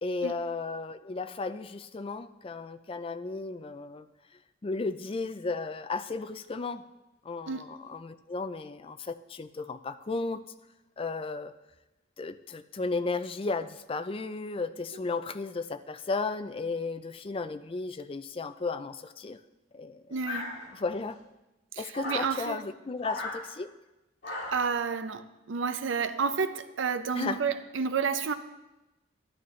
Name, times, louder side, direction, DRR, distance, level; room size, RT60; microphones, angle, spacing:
voice 1, 0.0-4.1 4.6-6.8 7.2-10.4 11.0-11.5 12.2-19.4 19.7-20.2 20.7-21.2 21.8-23.7 27.1-27.4, left 3 dB, 30° left, 0.4 m, -34 dB
voice 2, 20.1-20.5 21.7-22.7 24.3-28.3, right 5 dB, 75° right, 0.6 m, -31 dB
sound 1, 20.2-21.0 21.9-22.3 23.0-23.4 24.2-24.7, left 1 dB, 60° left, 2.3 m, -36 dB
11.0 x 11.0 x 3.2 m
head